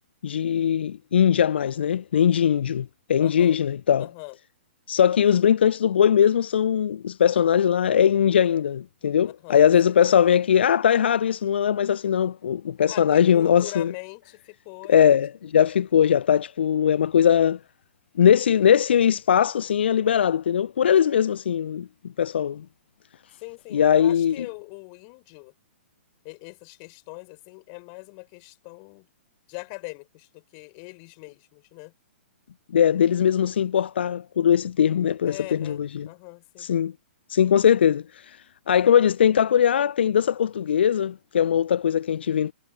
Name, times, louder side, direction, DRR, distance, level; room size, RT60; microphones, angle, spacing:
voice 1, 0.2-4.1 4.9-13.9 14.9-17.6 18.2-22.6 23.7-24.5 32.7-36.1 36.6-36.9 37.3-42.5, left 8 dB, 60° left, 0.7 m, -20 dB
voice 2, 3.2-3.6 4.0-4.3 9.4-9.7 12.9-15.2 23.4-25.5 26.2-29.1 29.5-31.9 35.2-36.7, left 40 dB or more, 35° left, 6.4 m, -42 dB
figure-of-eight pair, 115°, 7 cm